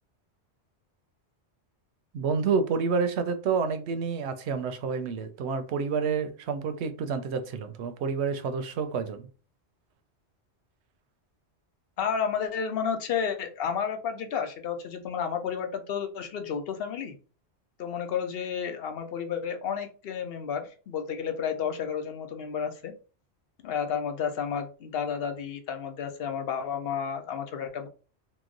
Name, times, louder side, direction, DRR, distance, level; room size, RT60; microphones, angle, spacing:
voice 1, 2.1-9.3, right 5 dB, 75° right, 0.8 m, -29 dB
voice 2, 12.0-17.2 17.8-22.9 23.6-27.9, left 7 dB, 65° left, 0.8 m, -31 dB
2.9 x 2.0 x 3.7 m
omnidirectional pair, 1.1 m